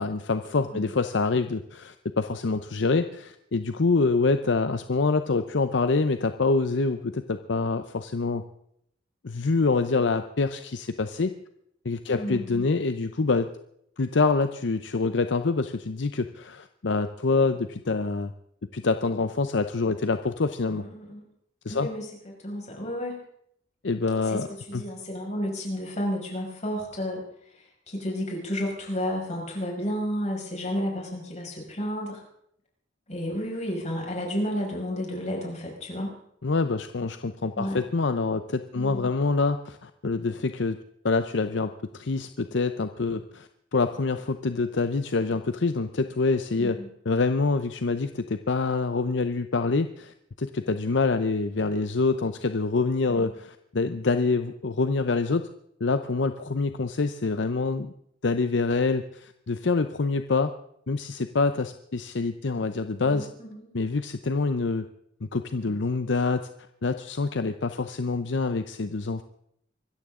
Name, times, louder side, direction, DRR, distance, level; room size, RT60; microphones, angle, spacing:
voice 1, 0.0-8.4 9.2-11.3 11.8-13.5 14.0-18.3 18.7-20.8 21.6-21.9 23.8-24.8 36.4-40.8 41.0-55.5 55.8-57.9 58.2-60.5 60.9-63.3 63.7-64.9 65.3-66.5 66.8-69.2, left 3 dB, 70° left, 10 dB, 0.7 m, -26 dB
voice 2, 12.1-12.6 20.7-21.2 21.7-23.2 24.3-27.2 27.5-32.2 33.1-36.2 37.6-37.8 38.7-39.1 46.5-46.9 63.0-63.7, equal, 40° left, -1 dB, 5.9 m, -32 dB
25.0 x 13.5 x 3.7 m, 0.71 s
head